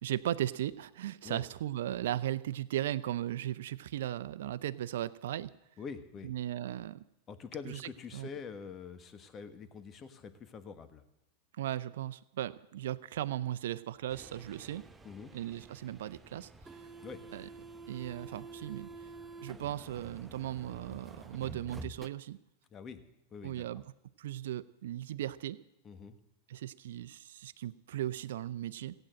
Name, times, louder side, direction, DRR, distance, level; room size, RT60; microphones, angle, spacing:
voice 1, 0.0-5.5 6.2-7.0 7.6-7.8 8.1-8.3 11.6-14.8 15.3-16.9 17.3-17.5 17.9-18.9 19.4-22.4 23.4-23.8 24.2-25.6 26.5-28.9, right 12 dB, 75° right, 13 dB, 0.5 m, -37 dB
voice 2, 5.8-6.3 7.3-11.0 15.0-15.3 17.0-17.2 22.7-23.0 23.3-23.6 25.8-26.2, left 6 dB, 30° left, 10 dB, 1.4 m, -45 dB
sound 1, 14.1-22.1, right 3 dB, 10° right, 0.8 m, -49 dB
16.0 x 8.8 x 7.6 m, 0.88 s
hypercardioid pair, 110°, 0 cm